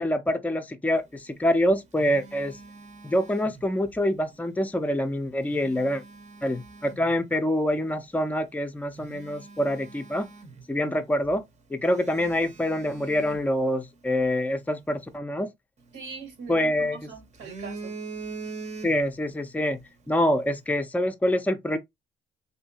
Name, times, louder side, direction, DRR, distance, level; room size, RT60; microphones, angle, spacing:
voice 1, 0.0-2.6 3.0-6.0 6.4-10.3 10.7-11.4 11.7-15.5 16.5-17.1 18.8-19.8 20.1-21.8, left 1 dB, 10° left, 0.5 m, -26 dB
Telephone, 1.4-4.0 5.2-7.1 7.8-7.9 8.5-8.6 8.9-11.0 11.2-11.4 11.9-14.3 15.8-16.8 17.2-19.3 19.6-19.8, right 3 dB, 35° right, 0.8 m, -43 dB
voice 2, 15.9-17.9, right 5 dB, 85° right, 1.7 m, -41 dB
3.1 x 2.7 x 2.8 m
cardioid pair, 90°, 20 cm